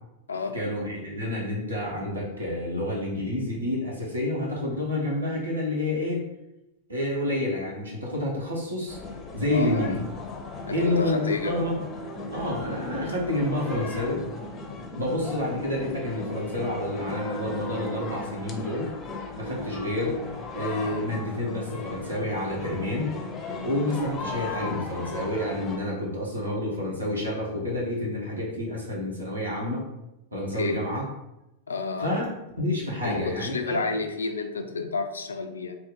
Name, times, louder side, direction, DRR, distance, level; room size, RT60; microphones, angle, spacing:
voice 1, 0.5-6.2 6.9-9.0 9.3-10.0 10.7-11.8 12.3-14.2 14.9-18.9 19.4-20.2 20.5-23.1 23.6-29.8 30.3-31.0 32.0-32.2 32.6-33.9, left 1 dB, 80° right, -4 dB, 1.0 m, -29 dB
sound 1, 8.9-25.8, left 2 dB, 25° left, 0.6 m, -36 dB
voice 2, 9.5-10.0 10.7-11.7 30.6-30.8 31.7-32.2 33.0-35.8, left 4 dB, 70° left, 7 dB, 0.3 m, -30 dB
2.8 x 2.6 x 3.9 m, 0.91 s
figure-of-eight pair, 90°, 0 cm